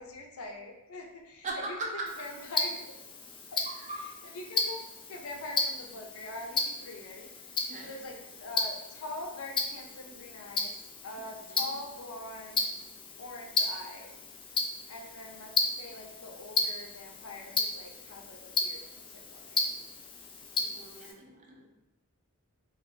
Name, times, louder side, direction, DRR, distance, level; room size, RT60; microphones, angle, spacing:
voice 1, 0.0-1.7 2.2-2.8 3.5-3.6 4.3-7.6 7.8-10.7 11.0-12.8 13.2-14.1 14.9-18.9 19.1-19.6, left 2 dB, 70° left, 1 dB, 0.7 m, -43 dB
voice 2, 1.4-2.1 3.7-4.1 7.7-7.9 11.4-11.7 20.6-21.7, right 2 dB, 35° right, 0 dB, 0.6 m, -39 dB
Tick-tock, 2.1-21.1, left 3 dB, 20° left, 0.3 m, -35 dB
3.3 x 2.6 x 4.0 m, 0.90 s
head